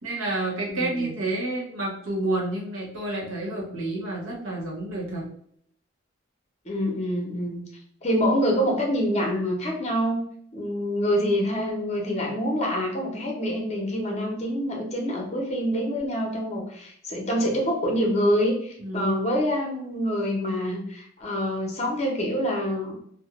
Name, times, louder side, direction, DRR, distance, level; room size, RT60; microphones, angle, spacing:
voice 1, 0.0-5.3 18.8-19.1, right 2 dB, 85° right, -2 dB, 0.9 m, -29 dB
voice 2, 0.7-1.1 6.6-7.6 8.0-10.2 10.5-22.9, equal, 35° left, 0 dB, 0.6 m, -26 dB
2.3 x 2.1 x 2.9 m, 0.65 s
head